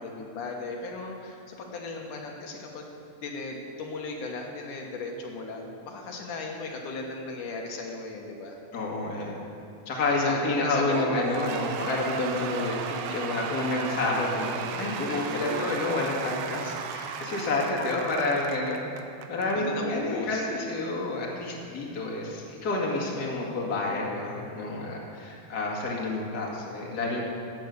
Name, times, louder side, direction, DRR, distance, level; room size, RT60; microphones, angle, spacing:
voice 1, 0.0-2.9 3.2-8.6 10.1-11.6 15.1-15.8 16.5-16.6 17.1-17.2 19.6-20.5 24.7-25.1 27.1-27.2, left 3 dB, 80° left, 0 dB, 2.9 m, -37 dB
voice 2, 8.7-9.4 9.9-18.8 19.1-27.2, left 2 dB, 35° left, -3 dB, 2.3 m, -29 dB
Cheering / Applause / Crowd, 10.9-19.6, right 7 dB, 75° right, 1.9 m, -35 dB
15.0 x 9.1 x 6.7 m, 2.6 s
omnidirectional pair, 3.6 m